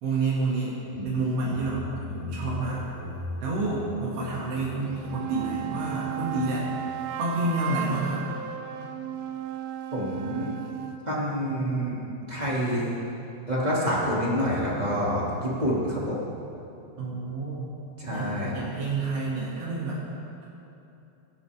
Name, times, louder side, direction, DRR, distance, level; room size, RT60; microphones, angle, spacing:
voice 1, 0.0-0.8 1.0-2.8 3.4-6.7 7.2-8.3 17.0-17.7 18.1-20.0, right 3 dB, 45° right, -7 dB, 2.5 m, -29 dB
sound 1, 1.4-6.7, left 3 dB, 60° left, 2.1 m, -39 dB
sound 2, 4.8-11.0, right 10 dB, 80° right, 2.3 m, -35 dB
voice 2, 9.9-10.5 11.0-12.0 12.3-12.9 13.5-16.2 18.0-18.6, equal, 15° right, -6 dB, 1.6 m, -27 dB
22.5 x 12.0 x 3.6 m, 2.8 s
omnidirectional pair, 4.9 m